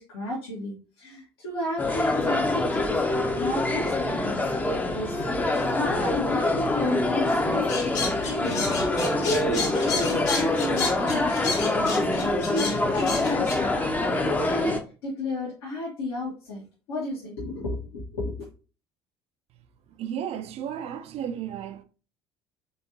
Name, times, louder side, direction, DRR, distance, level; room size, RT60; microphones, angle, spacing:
voice 1, 0.0-3.0 3.3-5.2 5.5-13.8 14.1-16.6 16.9-18.4, left 2 dB, 75° left, 1.2 m, -33 dB
sound 1, 1.8-14.8, left 2 dB, 10° left, 0.6 m, -25 dB
sound 2, 7.7-13.6, left 4 dB, 55° left, 1.4 m, -31 dB
voice 2, 20.0-21.8, right 9 dB, 50° right, 0.5 m, -33 dB
3.5 x 3.1 x 2.7 m
figure-of-eight pair, 55°, 14 cm